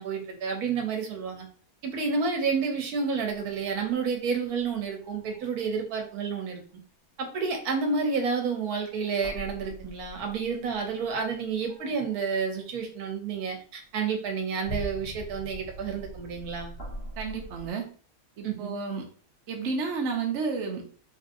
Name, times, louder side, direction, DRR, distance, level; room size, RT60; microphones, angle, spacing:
voice 1, 0.0-1.4 1.8-6.6 7.3-16.7 18.4-18.7, right 5 dB, 85° right, 3 dB, 1.3 m, -30 dB
sound 1, 3.3-4.7 5.0-5.8 8.9-10.9 11.7-12.7 13.4-13.5 14.1-17.7, right 1 dB, 40° left, 1.8 m, -42 dB
voice 2, 17.2-17.9 18.4-19.1 19.5-20.8, right 4 dB, 60° right, 2 dB, 0.9 m, -31 dB
3.9 x 2.7 x 2.6 m, 0.44 s
omnidirectional pair, 1.6 m